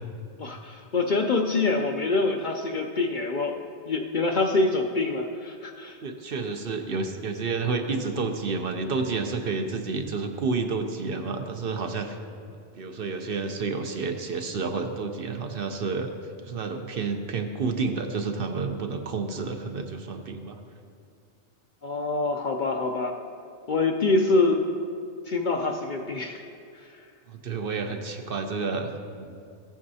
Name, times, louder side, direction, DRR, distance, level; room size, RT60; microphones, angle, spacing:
voice 1, 0.4-6.0 21.8-23.2 23.7-24.6 25.3-26.4 26.8-27.0, left 3 dB, 55° left, 4 dB, 0.6 m, -25 dB
voice 2, 6.0-12.2 12.8-16.1 16.5-20.6 27.3-28.9 29.2-29.4, right 4 dB, 60° right, 5 dB, 0.8 m, -30 dB
15.0 x 8.6 x 2.7 m, 2.3 s
omnidirectional pair, 1.2 m